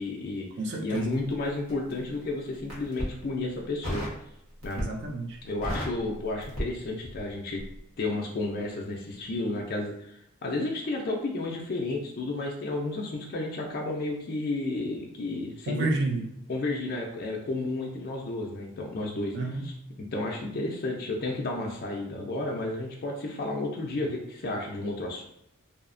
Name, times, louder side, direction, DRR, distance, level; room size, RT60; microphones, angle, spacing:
voice 1, 0.0-0.5 0.8-4.1 4.6-4.8 5.4-7.6 8.0-15.9 16.5-19.4 19.6-19.7 20.0-25.2, left 2 dB, 40° left, -1 dB, 0.3 m, -32 dB
voice 2, 0.6-1.1 4.8-5.4 15.7-16.3 19.3-19.7, right 2 dB, 50° right, 1 dB, 0.4 m, -30 dB
Crackle, 0.9-2.0 2.6-3.2 3.8-4.2 4.6-5.1 5.4-7.3 7.6-7.8, equal, 75° right, 1.1 m, -34 dB
2.6 x 2.0 x 2.5 m, 0.78 s
head